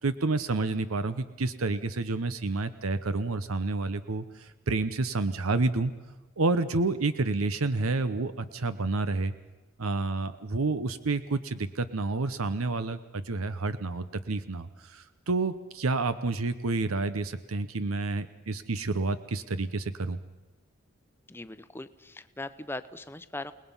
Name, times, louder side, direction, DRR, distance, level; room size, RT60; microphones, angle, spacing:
voice 1, 0.0-5.9 6.4-9.3 9.8-20.2, right 3 dB, 85° right, 12 dB, 0.9 m, -29 dB
voice 2, 21.3-23.5, left 2 dB, 10° left, 12 dB, 0.7 m, -40 dB
29.0 x 19.5 x 5.5 m, 1.2 s
head